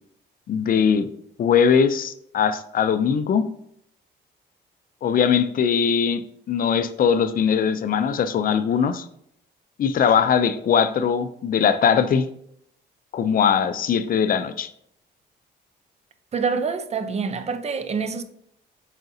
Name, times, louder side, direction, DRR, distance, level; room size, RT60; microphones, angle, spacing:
voice 1, 0.5-1.1 1.4-3.5 5.0-6.2 6.5-9.1 9.8-12.3 13.1-14.7, left 7 dB, 45° left, 0.4 m, -20 dB
voice 2, 16.3-18.2, right 5 dB, 35° right, 0.4 m, -26 dB
4.9 x 4.0 x 2.7 m
cardioid pair, 90°, 20 cm